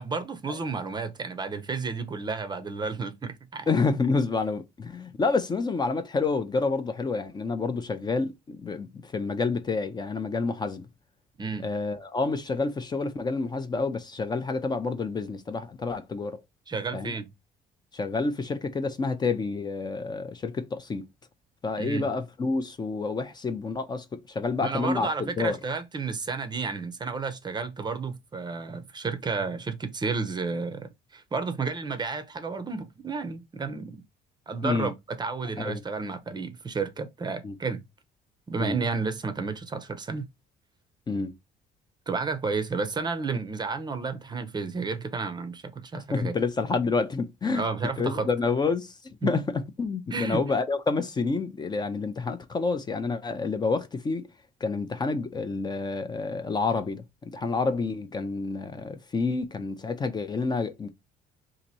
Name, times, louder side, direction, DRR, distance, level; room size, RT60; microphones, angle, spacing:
voice 1, 0.0-3.8 11.4-11.7 16.7-17.3 21.8-22.2 24.6-34.0 34.5-37.8 38.5-40.3 42.1-46.4 47.5-48.3 49.2-49.3 50.1-50.4, right 4 dB, 25° right, 0.6 m, -32 dB
voice 2, 3.7-10.9 11.6-16.4 16.9-17.1 17.9-21.1 21.6-25.6 34.6-34.9 35.6-35.8 37.4-37.5 38.6-38.8 41.1-41.3 46.1-47.7 48.0-54.2 54.6-57.0 57.3-60.9, left 4 dB, 25° left, 0.5 m, -28 dB
2.8 x 2.6 x 4.0 m
cardioid pair, 110°, 17 cm